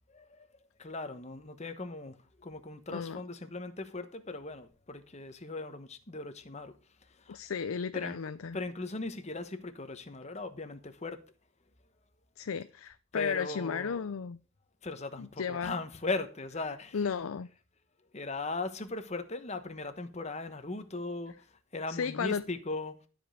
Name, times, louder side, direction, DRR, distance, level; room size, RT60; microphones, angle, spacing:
voice 1, 0.1-0.5 0.8-6.8 7.2-7.4 7.9-8.2 8.5-11.2 13.1-14.1 14.8-17.1 18.1-21.3 21.7-23.0, left 3 dB, 30° left, 1.0 m, -38 dB
voice 2, 2.9-3.2 7.3-8.6 12.4-14.4 15.2-15.8 16.9-17.5 21.9-22.5, left 6 dB, 75° left, 0.5 m, -34 dB
12.5 x 5.2 x 6.1 m
head